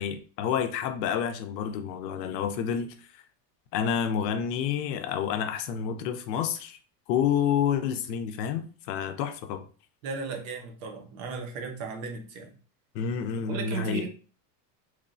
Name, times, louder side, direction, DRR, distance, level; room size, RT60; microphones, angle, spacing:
voice 1, 0.0-3.2 3.7-6.8 7.1-9.6 12.9-14.1, left 8 dB, 75° left, 0.6 m, -29 dB
voice 2, 10.0-12.5 13.5-14.1, right 4 dB, 55° right, 0.6 m, -36 dB
3.1 x 2.1 x 2.5 m
supercardioid pair, 180°, 50 cm